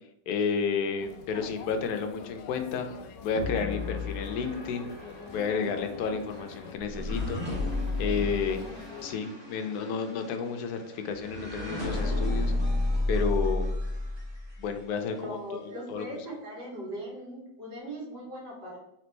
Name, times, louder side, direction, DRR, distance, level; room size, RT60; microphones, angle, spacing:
voice 1, 0.3-2.9 3.2-4.9 5.3-7.4 8.0-8.6 9.0-12.5 13.1-13.7 14.6-16.1, left 5 dB, 70° left, 6 dB, 1.1 m, -31 dB
sound 1, 1.0-9.2, left 6 dB, 90° left, 1.2 m, -45 dB
sound 2, 3.4-14.7, left 2 dB, 20° right, 0.9 m, -32 dB
voice 2, 15.1-18.8, equal, 75° right, -5 dB, 2.3 m, -40 dB
4.1 x 3.3 x 3.2 m, 0.82 s
omnidirectional pair, 1.8 m